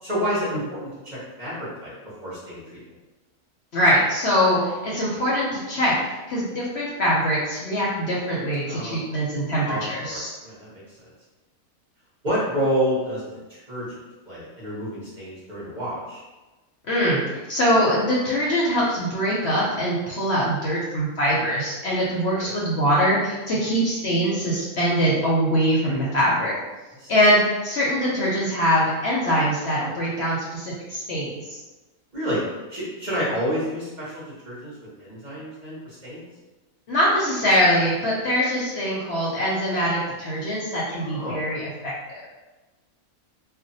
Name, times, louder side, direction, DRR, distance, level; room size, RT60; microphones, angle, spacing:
voice 1, 0.0-2.8 8.7-9.0 9.7-10.8 12.2-13.2 13.5-14.0 14.3-16.2 22.4-22.5 27.0-27.1 29.8-29.9 32.1-32.4 32.7-34.7 35.0-36.2 41.0-41.4, equal, 40° right, -9 dB, 0.8 m, -29 dB
voice 2, 3.7-10.3 16.9-17.2 17.5-26.6 27.1-31.6 36.9-42.2, equal, 60° left, -6 dB, 0.7 m, -23 dB
2.5 x 2.1 x 3.9 m, 1.2 s
omnidirectional pair, 1.5 m